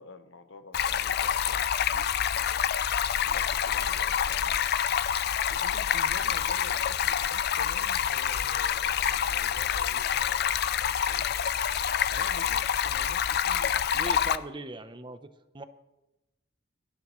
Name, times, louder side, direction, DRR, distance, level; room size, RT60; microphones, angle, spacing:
voice 1, 0.0-2.1 3.2-4.7 5.5-11.5 12.1-13.8, left 3 dB, 75° left, 9 dB, 1.1 m, -47 dB
Stream, 0.7-14.4, left 9 dB, 55° left, 0.4 m, -27 dB
voice 2, 13.9-15.6, right 2 dB, 25° right, 11 dB, 0.7 m, -40 dB
29.5 x 11.0 x 3.1 m, 0.98 s
head